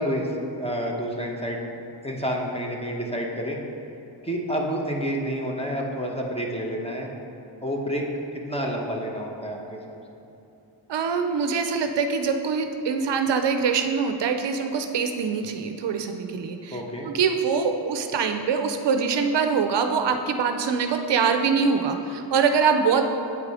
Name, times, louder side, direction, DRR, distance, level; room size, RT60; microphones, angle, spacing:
voice 1, 0.0-1.7 2.0-3.6 4.2-7.1 7.6-8.1 8.3-10.0 16.7-17.1, equal, 15° left, 0 dB, 1.1 m, -29 dB
voice 2, 10.9-16.8 17.0-23.1, right 5 dB, 65° right, 6 dB, 0.6 m, -24 dB
8.1 x 4.8 x 4.9 m, 2.9 s
cardioid pair, 80°, 45 cm